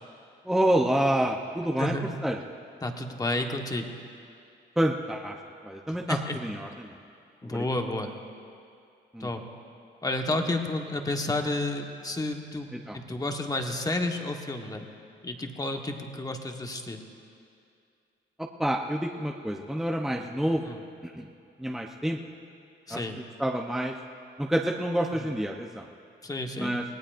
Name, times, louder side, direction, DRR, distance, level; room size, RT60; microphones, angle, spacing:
voice 1, 0.5-1.9 2.2-2.4 4.8-5.4 5.6-6.2 6.4-6.9 7.4-7.7 9.1-9.3 12.9-13.0 18.4-20.6 21.0-21.3 21.6-22.2 22.9-23.9 24.4-25.9 26.6-26.8, right 1 dB, ahead, 1 dB, 0.7 m, -28 dB
voice 2, 1.8-2.2 2.8-3.9 5.9-6.4 7.4-8.1 9.2-9.4 10.0-14.8 15.2-17.0 20.6-20.8 22.9-23.2 25.2-25.3 26.2-26.7, left 2 dB, 20° left, 3 dB, 1.3 m, -31 dB
25.0 x 17.5 x 2.6 m, 2.5 s
cardioid pair, 90°, 20 cm